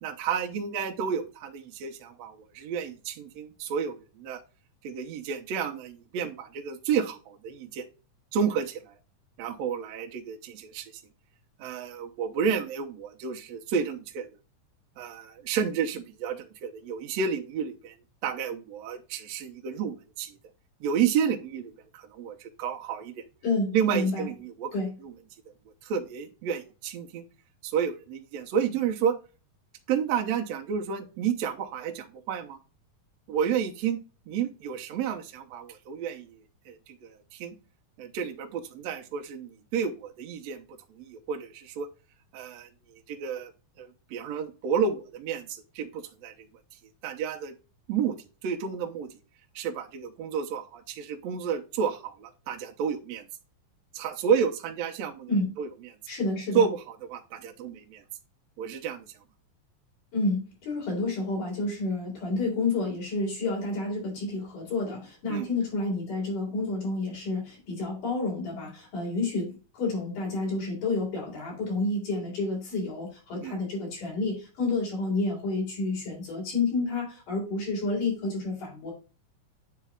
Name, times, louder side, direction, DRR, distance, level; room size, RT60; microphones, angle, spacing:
voice 1, 0.0-4.4 4.8-7.8 8.3-8.9 9.4-10.9 11.6-14.3 15.0-17.9 18.2-20.4 20.8-23.2 23.7-24.7 25.0-25.1 25.8-27.2 27.6-29.2 29.9-32.6 33.3-34.0 34.3-36.4 36.7-37.6 38.0-40.6 40.9-41.9 42.3-43.5 43.8-46.5 47.0-47.5 47.9-48.2 48.4-49.1 49.6-53.3 53.9-55.3 55.6-55.7 56.5-58.0 58.6-59.1 65.3-65.5 73.4-73.6, right 7 dB, 70° right, 2 dB, 1.9 m, -31 dB
voice 2, 23.4-24.3 24.7-24.9 55.3-55.5 56.1-56.6 60.1-78.9, left 3 dB, 85° left, -3 dB, 5.1 m, -30 dB
9.2 x 3.4 x 3.5 m, 0.33 s
omnidirectional pair, 3.6 m